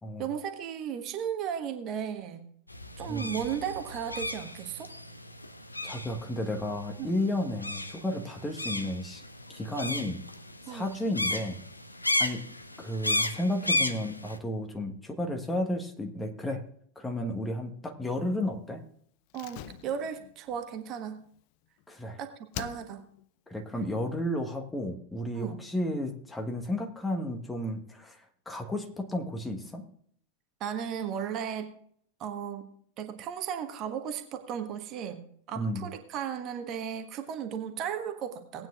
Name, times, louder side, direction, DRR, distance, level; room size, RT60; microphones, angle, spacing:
voice 1, 0.2-2.4 3.0-4.9 7.0-7.1 10.7-10.9 19.3-21.2 22.2-22.3 22.6-23.0 25.3-25.5 30.6-31.7 32.2-35.2 35.5-38.7, right 8 dB, 35° right, 6 dB, 1.3 m, -35 dB
sound 1, 2.7-14.4, left 2 dB, 85° left, 0.7 m, -34 dB
voice 2, 3.1-3.4 5.8-9.2 9.5-10.2 10.7-11.6 12.2-12.4 12.8-16.6 16.9-18.8 21.9-22.2 23.5-29.8 35.6-35.9, left 1 dB, 10° left, 3 dB, 1.4 m, -33 dB
Slam, 19.3-22.1 22.5-23.3 23.5-23.6, left 12 dB, 45° left, 0.5 m, -44 dB
18.5 x 9.2 x 2.5 m, 0.63 s
figure-of-eight pair, 90°, 0 cm